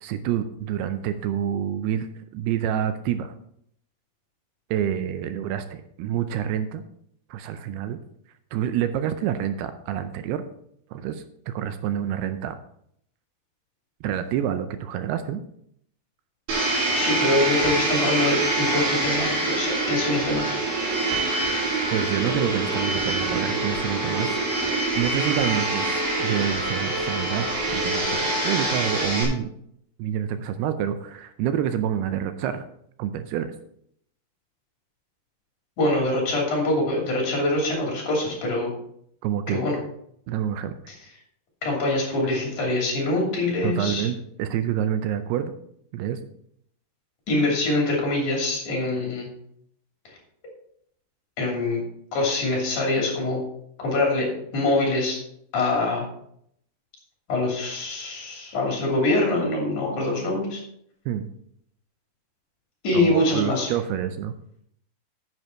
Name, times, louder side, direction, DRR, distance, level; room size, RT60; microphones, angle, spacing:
voice 1, 0.0-2.1 2.3-3.3 4.7-6.8 7.3-8.0 8.5-10.4 10.9-12.6 14.0-15.4 21.9-24.4 25.0-29.5 30.0-32.7 33.0-33.5 39.2-39.6 40.3-40.8 43.6-45.5 45.9-46.2 61.1-61.3 62.9-64.3, right 10 dB, 80° right, 10 dB, 2.6 m, -27 dB
Domestic sounds home sounds, 16.5-29.2, right 2 dB, 65° right, 4.5 m, -25 dB
voice 2, 16.9-20.6 35.8-38.7 39.5-39.8 41.6-44.1 47.3-49.3 51.4-51.8 52.1-53.4 53.8-55.2 55.5-56.1 57.3-60.6 62.8-63.7, left 2 dB, 50° left, -1 dB, 4.0 m, -24 dB
9.6 x 8.0 x 4.4 m, 0.70 s
omnidirectional pair, 4.8 m